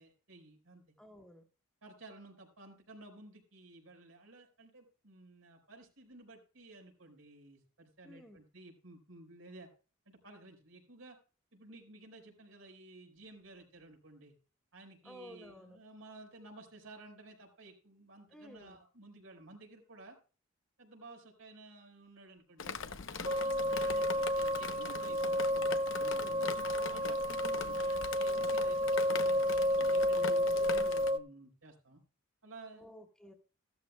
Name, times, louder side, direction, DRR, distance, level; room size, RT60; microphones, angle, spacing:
voice 1, 0.0-0.8 1.8-9.7 10.0-11.2 11.5-14.3 14.7-20.2 20.8-25.4 26.2-26.4 26.9-32.0 32.4-32.8, right 2 dB, 75° right, 3 dB, 4.8 m, -54 dB
voice 2, 1.0-1.4 8.0-8.4 15.0-15.8 18.3-18.8 26.0-26.4 32.7-33.3, equal, 5° left, 2 dB, 1.7 m, -53 dB
Drip, 22.6-31.1, left 5 dB, 65° left, 0.8 m, -42 dB
sound 1, 23.2-31.2, equal, 25° right, 0.6 m, -31 dB
15.5 x 13.0 x 2.3 m, 0.36 s
head